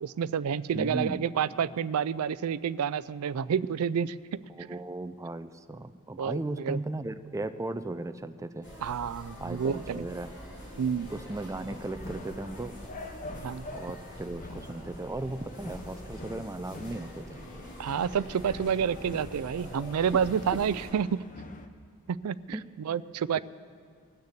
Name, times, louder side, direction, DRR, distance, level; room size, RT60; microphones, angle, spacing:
voice 1, 0.0-4.4 6.2-6.8 8.8-10.1 10.8-11.1 13.4-13.7 17.8-21.2 22.1-23.4, right 7 dB, 75° right, 18 dB, 0.4 m, -29 dB
voice 2, 0.7-1.2 4.6-8.7 9.4-10.3 11.1-12.7 13.7-17.4 22.5-22.6, right 2 dB, 15° right, 11 dB, 0.4 m, -36 dB
sound 1, 8.6-20.9, equal, 55° left, 3.7 m, -45 dB
sound 2, 11.7-21.7, left 2 dB, 35° left, 0.8 m, -46 dB
20.0 x 6.7 x 8.2 m, 2.1 s
head